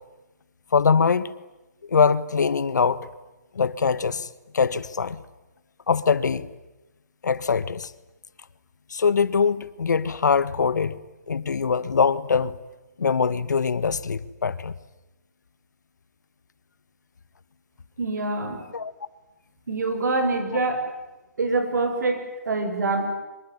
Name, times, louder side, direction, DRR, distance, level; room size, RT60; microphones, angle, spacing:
voice 1, 0.7-1.3 1.9-3.1 3.5-5.2 5.9-6.5 7.2-7.9 8.9-11.0 11.3-12.6 13.0-14.7 18.7-18.9, left 5 dB, 85° left, 1.4 m, -23 dB
voice 2, 18.0-18.6 19.7-20.8 21.4-23.1, right 3 dB, 75° right, 7.3 m, -25 dB
25.0 x 23.0 x 9.9 m
hypercardioid pair, 160°, 9 cm